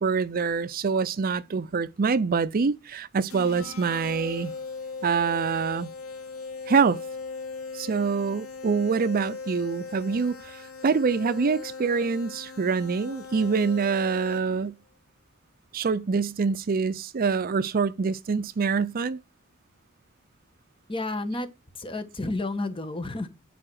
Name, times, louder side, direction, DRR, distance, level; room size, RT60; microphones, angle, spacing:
voice 1, 0.0-4.5 5.0-5.9 6.7-7.0 7.7-14.8 15.7-19.2, right 5 dB, 45° right, 0.5 m, -25 dB
sound 1, 3.3-14.7, left 4 dB, 80° left, 2.9 m, -39 dB
voice 2, 20.9-21.5 21.7-23.3, left 2 dB, 25° left, 1.4 m, -31 dB
10.0 x 4.8 x 6.3 m
head